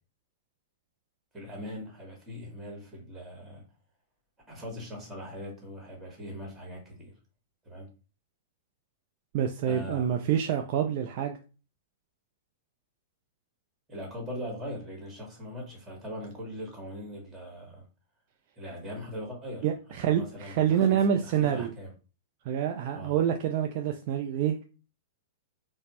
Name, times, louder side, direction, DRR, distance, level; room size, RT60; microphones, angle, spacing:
voice 1, 1.3-3.6 4.5-7.1 7.6-7.9 9.7-10.1 13.9-17.8 18.6-19.7 20.0-21.9 22.9-23.1, equal, 15° right, 1.6 m, -40 dB
voice 2, 9.3-11.4 19.6-21.7 22.5-24.6, right 9 dB, 45° right, 0.4 m, -27 dB
4.0 x 2.0 x 3.0 m
figure-of-eight pair, 105°, 0 cm